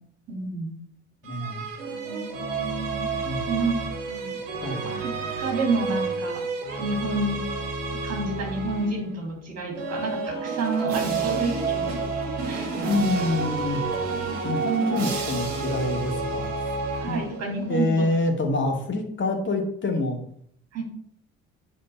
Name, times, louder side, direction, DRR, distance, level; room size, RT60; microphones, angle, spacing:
voice 1, 0.3-0.8 1.9-3.1 3.5-3.7 4.1-4.4 4.8-5.1 5.4-6.4 6.8-7.4 8.0-11.9 12.5-13.3 14.2-14.4 17.0-18.1 20.7-20.8, right 3 dB, 40° right, 0 dB, 3.5 m, -30 dB
voice 2, 1.2-1.6 3.2-3.5 4.6-4.9 12.8-13.8 14.4-16.5 17.1-17.2 17.7-20.2, left 2 dB, 30° left, 2 dB, 2.4 m, -26 dB
sound 1, 1.2-9.1 9.7-17.6, right 4 dB, 70° right, 1.6 m, -30 dB
9.4 x 4.3 x 5.8 m, 0.65 s
figure-of-eight pair, 50°, 37 cm